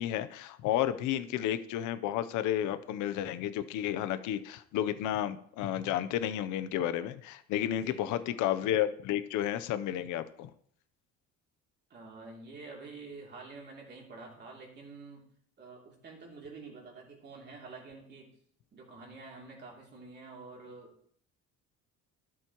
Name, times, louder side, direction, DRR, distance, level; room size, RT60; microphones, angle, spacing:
voice 1, 0.0-10.5, left 11 dB, 85° left, 12 dB, 0.8 m, -32 dB
voice 2, 1.0-1.3 7.8-8.4 11.9-15.2 15.6-18.3 18.7-21.1, right 3 dB, 35° right, -2 dB, 3.1 m, -48 dB
13.0 x 7.6 x 3.1 m, 0.63 s
cardioid pair, 155°, 29 cm